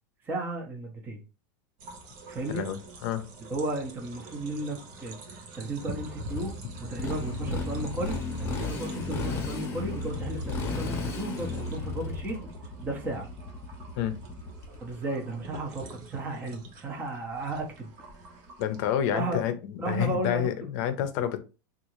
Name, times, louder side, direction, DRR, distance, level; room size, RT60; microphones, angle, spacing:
voice 1, 0.2-1.2 2.3-2.7 3.5-6.5 6.8-12.5 12.8-13.3 14.8-17.9 19.1-19.4 19.8-20.5, right 2 dB, 15° right, 1 dB, 0.7 m, -34 dB
sound 1, 1.8-18.9, right 2 dB, 50° right, 0.8 m, -45 dB
voice 2, 2.5-3.2 14.0-14.1 18.6-21.4, left 10 dB, 55° left, 10 dB, 0.6 m, -29 dB
Motorcycle, 6.3-14.9, left 3 dB, 25° left, 0.9 m, -34 dB
3.7 x 2.4 x 2.9 m, 0.32 s
supercardioid pair, 155°, 11 cm